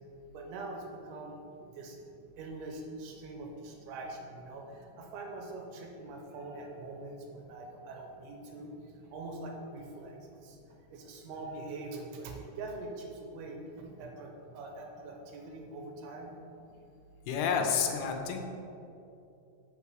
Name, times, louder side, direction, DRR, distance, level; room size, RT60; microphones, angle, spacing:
voice 1, 0.3-2.0 2.4-10.2 10.4-10.6 10.9-16.3, right 2 dB, 80° right, 2 dB, 2.7 m, -43 dB
voice 2, 17.3-18.5, left 6 dB, 80° left, 3 dB, 2.6 m, -29 dB
6.9 x 5.8 x 4.7 m, 2.7 s
omnidirectional pair, 4.7 m